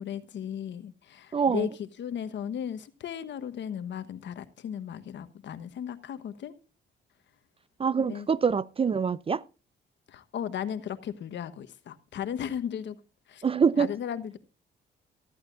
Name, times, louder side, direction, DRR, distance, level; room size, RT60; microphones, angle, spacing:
voice 1, 0.0-6.5 8.0-8.3 10.1-13.0 13.3-13.4 13.8-14.4, left 9 dB, 65° left, 1.2 m, -36 dB
voice 2, 1.3-1.7 7.8-9.4 13.4-13.9, right 6 dB, 30° right, 0.4 m, -25 dB
14.0 x 13.5 x 2.6 m
cardioid pair, 90°, 20 cm